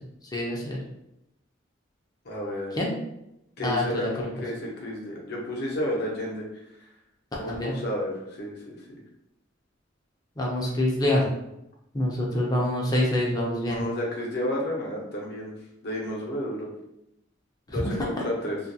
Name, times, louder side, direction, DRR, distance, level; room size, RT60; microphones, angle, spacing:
voice 1, 0.3-0.8 2.7-2.9 3.6-4.3 7.3-7.7 10.4-11.3 11.9-13.9 17.7-18.0, left 1 dB, 20° left, -2 dB, 0.5 m, -26 dB
voice 2, 2.2-2.8 3.6-4.1 4.4-6.5 6.8-6.9 7.4-9.0 13.6-16.7 17.7-18.6, left 1 dB, 60° left, -3 dB, 0.7 m, -31 dB
2.4 x 2.2 x 2.6 m, 0.83 s
head